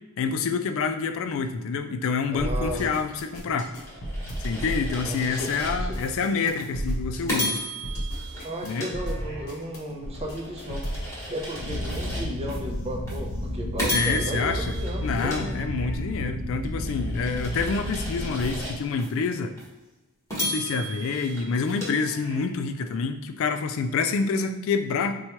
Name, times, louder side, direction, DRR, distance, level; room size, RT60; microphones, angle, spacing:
voice 1, 0.2-3.7 4.4-7.6 8.6-8.9 13.9-14.7 15.0-19.5 20.4-25.1, left 5 dB, 60° left, 9 dB, 0.3 m, -27 dB
voice 2, 2.3-2.9 5.0-5.5 5.8-5.9 8.4-15.6, equal, 30° right, 0 dB, 0.5 m, -34 dB
sound 1, 2.4-11.1, equal, 80° left, 0.8 m, -33 dB
sound 2, 3.7-6.1 6.6-6.7 7.3-9.6 10.1-12.6 13.1-13.2 13.8-16.1 16.6-19.1 19.6-19.7 20.3-22.6, equal, 15° left, 1.1 m, -35 dB
sound 3, 11.6-18.6, equal, 80° right, 0.7 m, -32 dB
4.3 x 2.3 x 2.9 m, 1.1 s
head